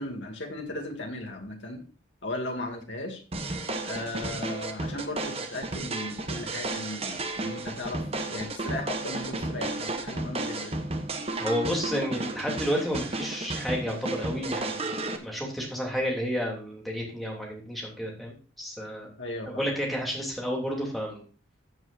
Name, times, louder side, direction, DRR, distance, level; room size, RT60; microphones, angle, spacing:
voice 1, 0.0-1.8 2.2-3.2 3.8-8.0 8.3-10.8 19.2-19.6, left 1 dB, 65° left, 2 dB, 2.4 m, -36 dB
sound 1, 3.3-15.2, right 2 dB, 30° right, 1.1 m, -33 dB
voice 2, 11.4-14.9 15.2-19.1 19.6-21.2, equal, ahead, -2 dB, 3.0 m, -31 dB
14.5 x 7.6 x 2.7 m, 0.38 s
head